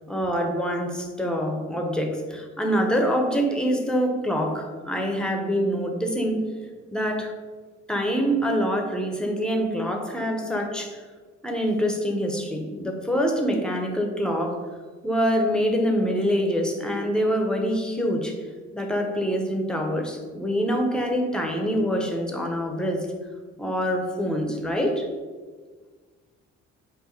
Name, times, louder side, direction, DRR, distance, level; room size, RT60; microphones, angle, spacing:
voice 1, 0.1-6.4 6.9-7.3 7.9-11.0 11.4-14.7 15.0-18.4 18.7-23.1 23.6-25.1, equal, ahead, 2 dB, 0.9 m, -25 dB
4.5 x 2.6 x 4.5 m, 1.5 s
hypercardioid pair, 55°, 34 cm